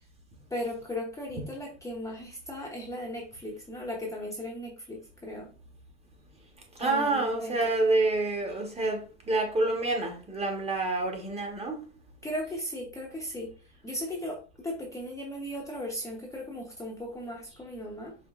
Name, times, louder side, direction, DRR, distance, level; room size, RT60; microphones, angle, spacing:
voice 1, 0.5-5.5 6.8-7.6 12.2-13.5 13.8-18.2, left 1 dB, 10° left, 0.9 m, -37 dB
voice 2, 6.8-11.8, right 2 dB, 20° right, 1.2 m, -28 dB
5.1 x 3.1 x 2.5 m
supercardioid pair, 120°, 34 cm